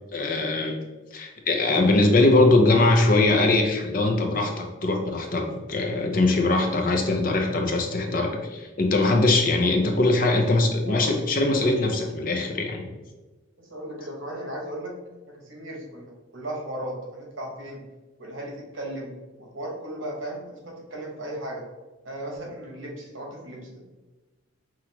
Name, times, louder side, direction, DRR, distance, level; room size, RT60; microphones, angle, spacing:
voice 1, 0.1-0.8 1.1-12.9, left 2 dB, 45° left, 2 dB, 0.5 m, -21 dB
voice 2, 10.2-11.1 13.6-14.9 15.3-16.0 16.3-17.8 18.2-21.6 22.0-23.8, right 1 dB, 80° right, -1 dB, 1.1 m, -36 dB
5.8 x 2.5 x 2.9 m, 1.2 s
head